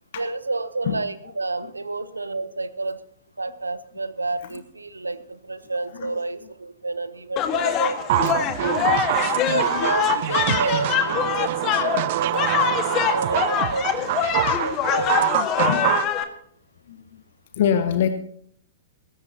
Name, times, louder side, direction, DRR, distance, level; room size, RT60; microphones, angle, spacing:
voice 1, 0.2-3.0 3.4-8.0 8.6-9.0 9.5-15.3, right 3 dB, 80° right, 15 dB, 0.9 m, -30 dB
sound 1, 7.4-16.2, left 9 dB, 30° left, 1.6 m, -24 dB
sound 2, 8.1-16.1, right 13 dB, 50° right, 0.7 m, -25 dB
voice 2, 8.6-9.1 9.3-9.8 10.5-10.6 13.0-13.1 15.7-15.8 16.9-17.2 17.5-18.1, left 9 dB, 55° left, 9 dB, 1.0 m, -26 dB
19.5 x 16.5 x 2.9 m, 0.65 s
figure-of-eight pair, 105°, 0 cm